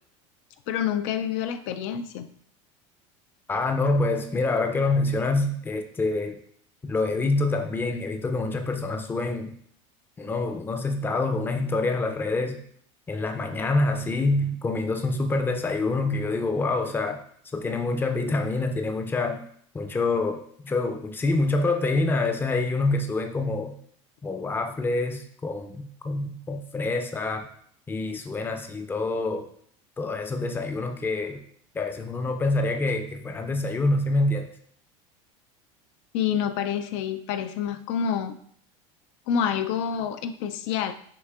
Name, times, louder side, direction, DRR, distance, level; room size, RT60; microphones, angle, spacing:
voice 1, 0.7-2.3 36.1-38.4 39.3-40.9, left 8 dB, 70° left, 9 dB, 0.4 m, -27 dB
voice 2, 3.5-6.4 6.8-9.5 10.2-12.6 13.1-17.2 17.5-19.4 19.7-23.8 24.2-27.5 27.9-29.5 30.0-31.4 31.7-34.5, left 2 dB, 15° left, 5 dB, 0.5 m, -26 dB
6.7 x 2.7 x 2.4 m, 0.63 s
supercardioid pair, 120°, 16 cm